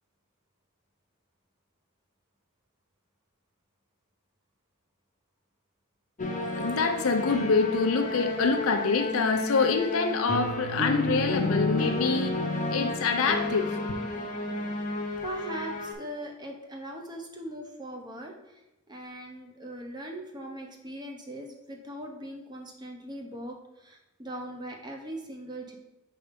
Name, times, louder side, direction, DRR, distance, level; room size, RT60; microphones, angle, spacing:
sound 1, 6.2-15.9, left 2 dB, 35° left, 0.7 m, -31 dB
voice 1, 6.6-12.3 12.7-13.8, left 4 dB, 70° left, 6 dB, 0.5 m, -26 dB
voice 2, 15.2-18.6 18.9-25.8, right 1 dB, 20° right, 1 dB, 0.8 m, -40 dB
5.3 x 3.4 x 5.2 m, 0.95 s
head